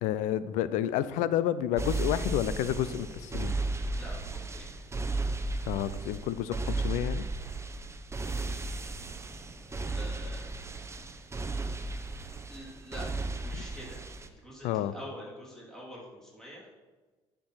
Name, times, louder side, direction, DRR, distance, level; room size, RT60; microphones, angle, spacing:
voice 1, 0.0-3.5 5.7-7.3 13.5-13.6 14.6-14.9, left 11 dB, 80° left, 15 dB, 0.5 m, -30 dB
sound 1, 1.8-14.3, right 2 dB, 20° right, 0.8 m, -35 dB
voice 2, 3.9-4.7 9.6-10.4 11.9-13.1 13.4-16.7, equal, 5° left, -5 dB, 3.1 m, -46 dB
10.5 x 4.4 x 5.7 m, 1.3 s
supercardioid pair, 70°, 13 cm